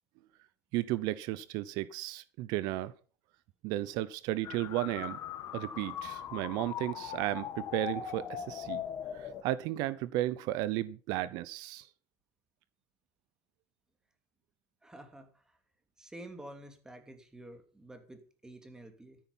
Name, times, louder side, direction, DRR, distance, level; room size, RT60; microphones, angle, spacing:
voice 1, 0.7-2.9 3.6-5.2 5.5-8.8 9.1-11.9, right 15 dB, 75° right, 0.8 m, -34 dB
sound 1, 4.4-9.4, left 9 dB, 50° left, 2.2 m, -40 dB
voice 2, 14.8-15.6 16.0-19.2, right 1 dB, 10° right, 2.8 m, -50 dB
13.5 x 10.5 x 5.5 m
cardioid pair, 135°, 7 cm